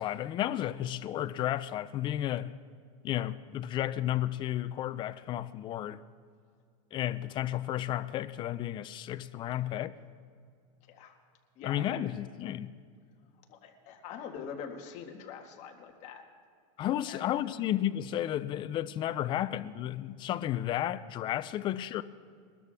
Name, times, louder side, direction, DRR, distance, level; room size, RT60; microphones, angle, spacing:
voice 1, 0.0-2.5 3.0-6.0 6.9-9.9 11.6-12.7 16.8-22.0, left 12 dB, 30° left, 0.4 m, -32 dB
voice 2, 10.9-11.2 11.6-12.1 13.5-16.2 17.1-17.2, left 7 dB, 45° left, 1.8 m, -44 dB
22.0 x 13.0 x 3.5 m
supercardioid pair, 145°, 17 cm